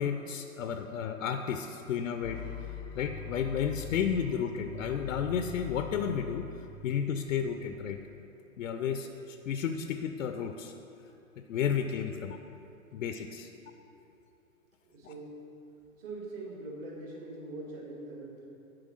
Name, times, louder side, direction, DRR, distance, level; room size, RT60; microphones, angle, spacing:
voice 1, 0.0-2.4 2.9-8.0 8.6-10.7 11.4-12.4 12.9-13.5, left 7 dB, 65° left, 7 dB, 0.6 m, -32 dB
sound 1, 2.2-8.2, left 5 dB, 15° left, 0.4 m, -43 dB
voice 2, 14.8-15.3 16.0-18.5, right 2 dB, 40° right, -2 dB, 1.9 m, -43 dB
7.7 x 4.8 x 6.2 m, 2.8 s
hypercardioid pair, 125°, 42 cm